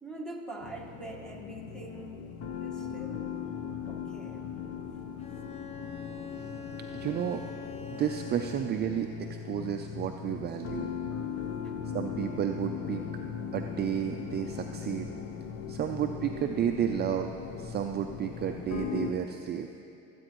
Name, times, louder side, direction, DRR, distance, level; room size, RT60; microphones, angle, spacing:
voice 1, 0.0-2.3 2.6-3.3 3.9-4.4 11.2-11.8, right 1 dB, ahead, -1 dB, 1.5 m, -44 dB
sound 1, 0.6-19.1, left 7 dB, 50° left, 0.9 m, -39 dB
Bowed string instrument, 5.2-9.0, left 6 dB, 20° left, 0.4 m, -43 dB
voice 2, 6.9-7.4 8.0-10.9 11.9-13.0 13.5-15.1 15.7-17.3 17.6-19.7, right 9 dB, 35° right, 5 dB, 0.4 m, -32 dB
23.5 x 9.0 x 3.0 m, 2.8 s
cardioid pair, 120°, 30 cm